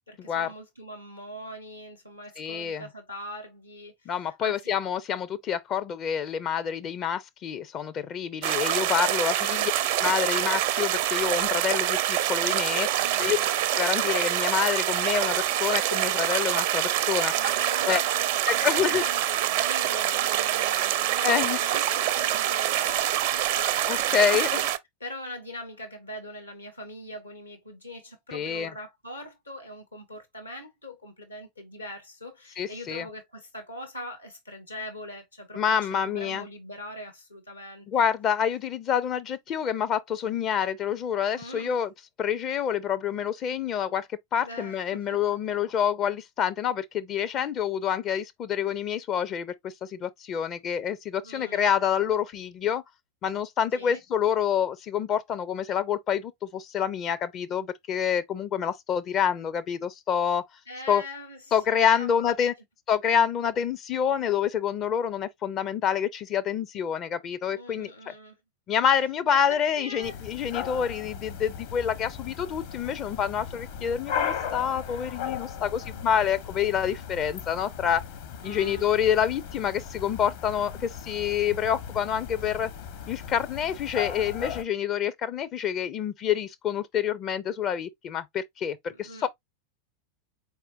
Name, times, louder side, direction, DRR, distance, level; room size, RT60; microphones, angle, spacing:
voice 1, 0.1-4.1 4.4-4.5 9.4-9.7 13.0-13.5 17.3-24.6 25.0-37.9 41.3-41.8 44.4-45.2 51.2-51.7 53.7-54.0 60.7-61.4 61.7-62.4 67.5-68.3 69.5-70.2 75.8-76.0 78.4-78.9 88.9-89.3, left 1 dB, 85° left, 1.8 m, -41 dB
voice 2, 2.4-2.9 4.1-9.7 10.0-12.9 13.2-17.3 17.9-18.0 18.5-19.0 21.2-21.6 23.9-24.6 28.3-28.7 32.6-33.1 35.5-36.4 37.9-41.9 42.2-52.8 53.2-60.4 60.9-61.0 61.5-62.5 62.9-68.1 68.7-78.0 78.4-82.7 83.1-89.3, left 8 dB, 30° left, 0.5 m, -27 dB
sound 1, 8.4-24.8, right 12 dB, 50° right, 0.5 m, -26 dB
sound 2, 70.0-84.6, left 8 dB, 50° left, 1.0 m, -37 dB
4.4 x 3.5 x 2.5 m
figure-of-eight pair, 90°, 0 cm